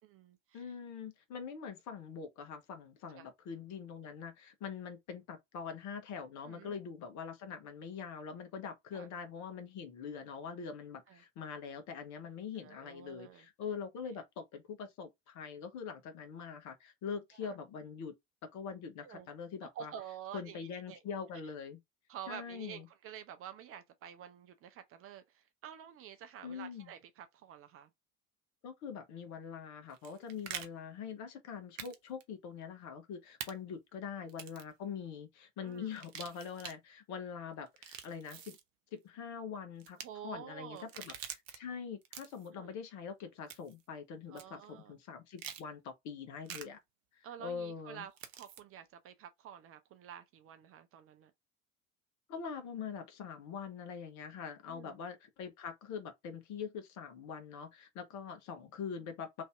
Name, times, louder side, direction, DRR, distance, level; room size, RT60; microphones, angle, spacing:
voice 1, 0.0-0.7 3.1-3.3 6.5-6.7 8.9-9.1 10.1-10.3 11.1-11.2 12.6-13.5 17.4-17.6 19.0-19.3 19.7-21.0 22.1-27.9 35.6-36.0 40.0-40.9 42.5-42.8 44.3-44.9 47.2-51.3 54.7-55.0, right 9 dB, 35° right, 0.6 m, -49 dB
voice 2, 0.5-18.1 18.5-19.9 20.3-21.8 22.3-22.9 26.4-26.9 28.6-38.6 38.9-40.0 40.2-41.1 41.6-46.8 47.2-48.0 52.3-59.4, left 6 dB, 45° left, 1.2 m, -43 dB
sound 1, 29.9-30.7 31.8-32.2 33.4-33.5 34.3-34.7 35.9-36.7 37.7-38.6 39.8-40.1 40.8-41.6 42.0-42.5 43.5-43.8 44.4-44.5 45.4-45.6 46.5-46.6 48.2-48.6, right 9 dB, 70° right, 0.8 m, -45 dB
3.2 x 2.7 x 3.5 m
figure-of-eight pair, 70°, 39 cm